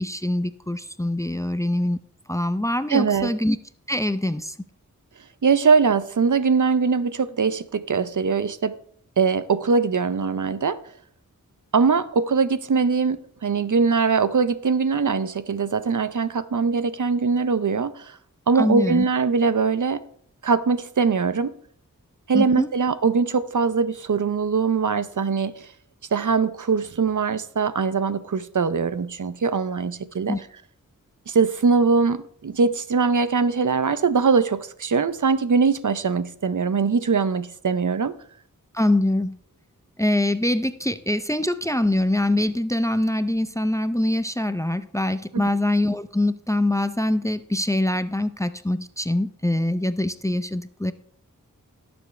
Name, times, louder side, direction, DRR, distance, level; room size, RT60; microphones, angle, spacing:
voice 1, 0.0-2.0 2.3-3.6 3.9-4.6 18.6-19.1 22.3-22.7 30.3-30.4 38.7-39.4 40.0-50.9, left 1 dB, 10° left, 0.5 m, -24 dB
voice 2, 2.9-3.3 5.4-8.8 9.2-10.8 11.7-18.2 18.5-20.0 20.4-21.5 22.3-25.7 26.1-30.4 31.3-38.1 45.3-45.5, right 5 dB, 60° right, 0.6 m, -22 dB
18.0 x 7.1 x 3.2 m
wide cardioid pair, 55°, 34 cm